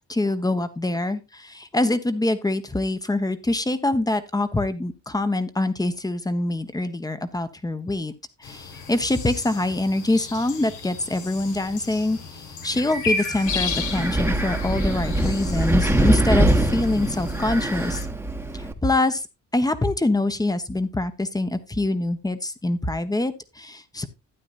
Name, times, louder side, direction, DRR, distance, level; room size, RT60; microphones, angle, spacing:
voice 1, 0.0-8.1 8.4-18.0 18.5-19.2 19.5-24.1, left 2 dB, 10° left, 11 dB, 1.1 m, -25 dB
sound 1, 8.4-18.0, left 4 dB, 85° left, 1.9 m, -34 dB
Wind, 13.5-18.7, right 1 dB, 5° right, 1.2 m, -23 dB
12.0 x 9.1 x 2.6 m, 0.24 s
cardioid pair, 90°, 30 cm